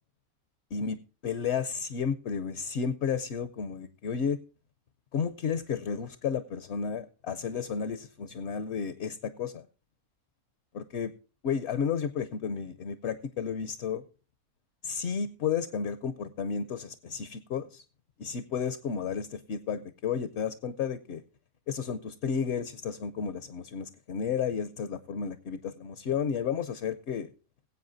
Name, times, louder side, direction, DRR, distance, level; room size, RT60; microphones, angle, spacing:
voice 1, 1.2-4.4 5.1-9.7 10.7-11.1 11.4-14.0 14.8-17.8 18.2-21.2 21.7-27.3, left 6 dB, 60° left, 0.8 m, -32 dB
20.5 x 8.2 x 2.6 m
omnidirectional pair, 1.5 m